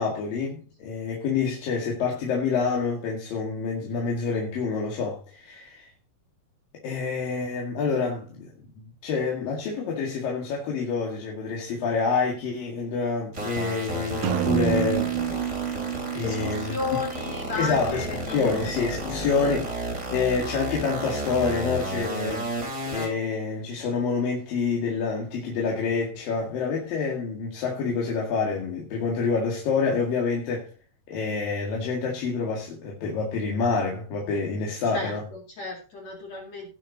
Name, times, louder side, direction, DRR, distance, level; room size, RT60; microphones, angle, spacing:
voice 1, 0.0-5.9 6.8-15.1 16.1-16.8 17.5-30.7 31.1-35.2, left 5 dB, 65° left, 3.7 m, -27 dB
sound 1, 13.3-23.1, right 1 dB, 20° right, 3.8 m, -32 dB
sound 2, 14.2-18.0, right 10 dB, 70° right, 2.6 m, -29 dB
voice 2, 16.2-18.6 19.4-19.5 34.9-36.7, left 4 dB, 50° left, 3.3 m, -33 dB
18.5 x 6.5 x 3.9 m
omnidirectional pair, 4.4 m